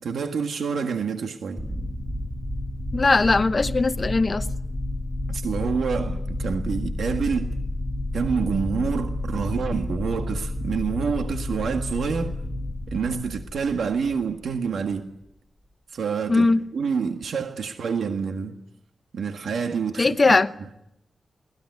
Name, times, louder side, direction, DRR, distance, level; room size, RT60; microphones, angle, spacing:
voice 1, 0.0-1.7 5.3-7.5 8.1-12.4 12.9-15.1 15.9-16.5 16.7-18.6 19.1-20.4, right 5 dB, 80° right, 1.7 m, -27 dB
sound 1, 1.6-14.6, left 1 dB, 10° left, 1.6 m, -30 dB
voice 2, 2.9-4.5 16.3-16.6 20.0-20.5, left 3 dB, 30° left, 0.9 m, -19 dB
22.5 x 19.0 x 9.5 m
wide cardioid pair, 135°, 0 cm